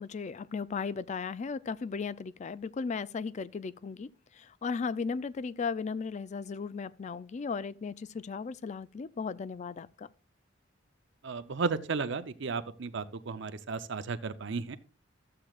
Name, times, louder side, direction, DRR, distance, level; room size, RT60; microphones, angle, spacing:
voice 1, 0.0-4.1 4.4-10.1, left 5 dB, 35° left, 0.3 m, -36 dB
voice 2, 11.2-14.8, right 4 dB, 65° right, 0.6 m, -34 dB
13.5 x 7.6 x 2.4 m
head